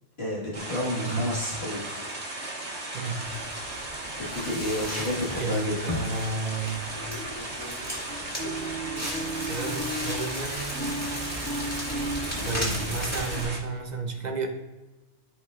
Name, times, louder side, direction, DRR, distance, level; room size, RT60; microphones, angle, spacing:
voice 1, 0.2-2.1 4.2-5.9, left 1 dB, 60° left, -6 dB, 1.8 m, -30 dB
sound 1, 0.5-13.6, right 2 dB, 70° right, 1.9 m, -36 dB
voice 2, 0.9-1.3 2.9-3.2 5.3-6.9 9.3-11.0 12.4-14.5, right 3 dB, 40° right, 4 dB, 0.8 m, -32 dB
Crackle, 3.2-13.4, equal, 15° left, 1.9 m, -34 dB
13.5 x 4.9 x 2.4 m, 1.1 s
omnidirectional pair, 1.2 m